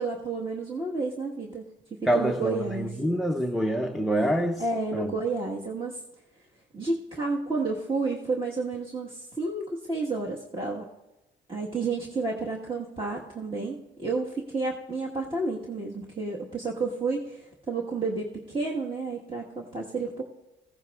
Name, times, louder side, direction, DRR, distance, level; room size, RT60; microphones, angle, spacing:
voice 1, 0.0-1.6 2.0-3.0 4.6-6.0 6.7-10.9 11.5-20.2, right 3 dB, 25° right, 1.5 m, -31 dB
voice 2, 2.1-4.6 4.9-5.1, right 1 dB, ahead, 0.6 m, -26 dB
18.5 x 15.5 x 2.4 m
cardioid pair, 90°, 20 cm